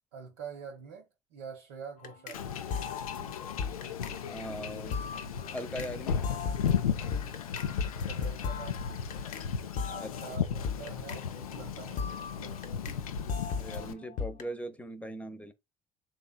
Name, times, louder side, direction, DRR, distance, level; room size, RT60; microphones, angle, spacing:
voice 1, 0.1-2.5 8.0-8.8 9.9-12.9, right 6 dB, 70° right, 0.7 m, -46 dB
sound 1, 2.0-2.4 2.7-5.9 6.2-9.5 9.8-13.0 13.3-14.5, left 6 dB, 45° left, 0.7 m, -38 dB
Wind / Ocean / Boat Water vehicle, 2.3-13.9, left 7 dB, 80° left, 0.4 m, -35 dB
voice 2, 4.3-5.0 5.5-6.2 10.0-10.1 13.6-15.5, equal, 5° left, 0.7 m, -40 dB
4.0 x 3.2 x 2.2 m
figure-of-eight pair, 60°, 18 cm